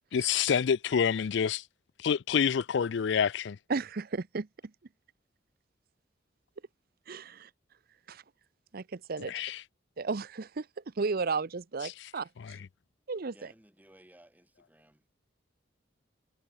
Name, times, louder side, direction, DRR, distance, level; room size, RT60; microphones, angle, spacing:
voice 1, 0.1-1.6 2.0-3.6 9.3-9.6 12.4-12.6, left 7 dB, 65° left, 0.4 m, -27 dB
voice 2, 3.7-4.5 7.1-7.5 8.1-8.2 8.7-9.3 10.0-10.7 11.0-12.3 13.1-13.3, right 4 dB, 50° right, 0.7 m, -33 dB
voice 3, 13.3-15.1, right 1 dB, 10° right, 4.3 m, -59 dB
head